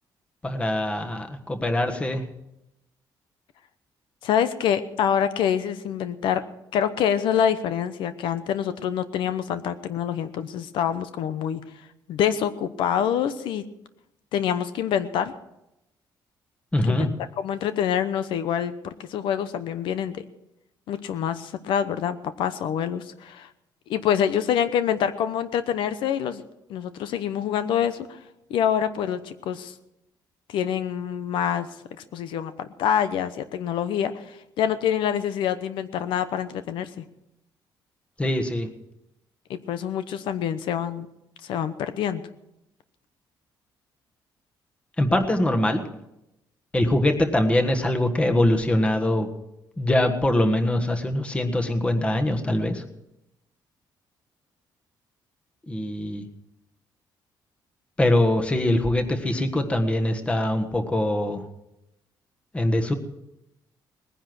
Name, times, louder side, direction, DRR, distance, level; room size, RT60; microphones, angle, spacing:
voice 1, 0.4-2.2 16.7-17.1 38.2-38.7 45.0-45.8 46.7-49.3 49.8-52.8 55.7-56.2 58.0-61.4 62.5-62.9, left 1 dB, 15° left, 6 dB, 1.4 m, -23 dB
voice 2, 4.2-6.4 6.7-11.6 12.1-13.6 14.3-15.3 16.9-17.1 17.4-20.2 20.9-23.5 23.9-26.4 26.7-28.2 28.5-29.7 30.5-31.7 32.1-37.0 39.5-41.1 41.4-42.2, left 9 dB, 90° left, 12 dB, 0.9 m, -26 dB
19.5 x 10.0 x 6.1 m, 0.87 s
cardioid pair, 145°, 8 cm